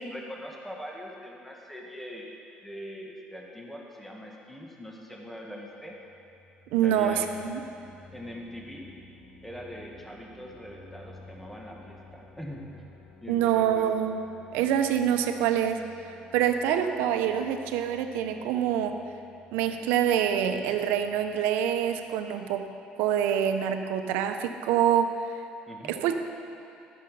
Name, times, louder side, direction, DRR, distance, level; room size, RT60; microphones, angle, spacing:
voice 1, 0.1-2.3 2.6-6.0 6.8-7.5 8.1-8.9 9.4-12.6 13.2-13.9 25.7-26.0, equal, 5° left, -1 dB, 1.4 m, -42 dB
sound 1, 5.7-22.4, left 3 dB, 80° left, 2.2 m, -54 dB
voice 2, 6.7-7.6 13.3-14.2 14.5-15.8 16.3-19.0 19.5-22.7 23.0-25.1 25.9-26.2, right 9 dB, 90° right, 7 dB, 0.7 m, -26 dB
13.5 x 6.8 x 5.5 m, 2.6 s
cardioid pair, 105°, 3 cm